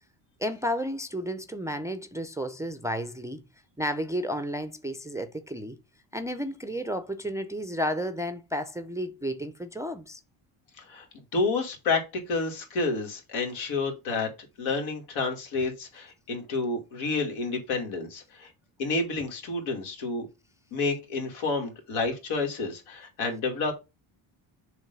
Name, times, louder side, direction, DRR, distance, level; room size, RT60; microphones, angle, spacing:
voice 1, 0.4-3.4 3.8-5.8 6.1-10.2, equal, 5° right, 0.4 m, -32 dB
voice 2, 11.3-14.3 14.6-18.5 18.8-20.3 20.7-23.7, left 3 dB, 80° left, 2.6 m, -29 dB
7.1 x 3.1 x 5.4 m
cardioid pair, 135°, 48 cm